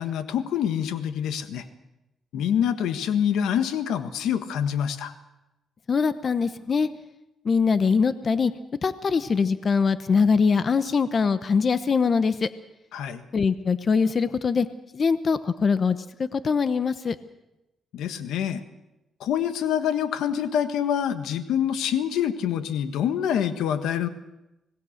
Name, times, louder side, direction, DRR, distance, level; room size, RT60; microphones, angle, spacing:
voice 1, 0.0-1.6 2.3-5.1 12.9-13.2 17.9-18.6 19.2-24.1, left 9 dB, 90° left, 10 dB, 1.5 m, -26 dB
voice 2, 5.9-6.9 7.4-8.5 8.8-12.5 13.3-14.7 14.9-16.0 16.3-17.2, left 5 dB, 45° left, 12 dB, 0.9 m, -22 dB
25.5 x 19.0 x 6.6 m, 0.95 s
cardioid pair, 90°, 0 cm